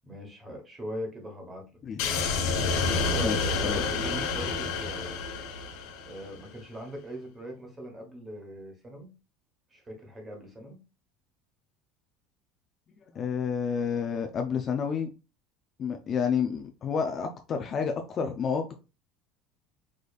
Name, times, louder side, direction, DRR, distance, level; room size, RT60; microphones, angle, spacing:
voice 1, 0.0-1.7 2.0-5.2 6.1-9.1 9.7-10.8, equal, 15° right, 1.2 m, -41 dB
voice 2, 1.8-2.1 3.2-3.8 13.1-15.1 15.8-18.7, left 6 dB, 25° left, 0.4 m, -30 dB
sound 1, 2.0-6.3, left 4 dB, 60° left, 1.1 m, -29 dB
4.9 x 4.0 x 2.4 m
cardioid pair, 175°, 0 cm